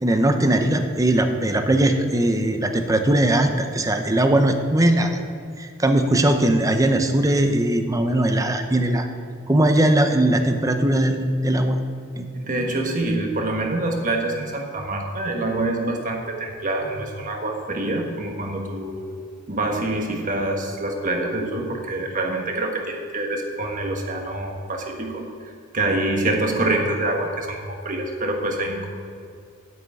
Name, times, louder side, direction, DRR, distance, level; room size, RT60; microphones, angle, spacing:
voice 1, 0.0-5.2 5.6-9.1 9.5-11.8 12.2-12.3, right 1 dB, 15° right, 6 dB, 0.7 m, -20 dB
voice 2, 12.3-19.0 19.5-28.9, right 2 dB, 40° right, 2 dB, 1.4 m, -26 dB
9.3 x 6.0 x 8.5 m, 2.3 s
head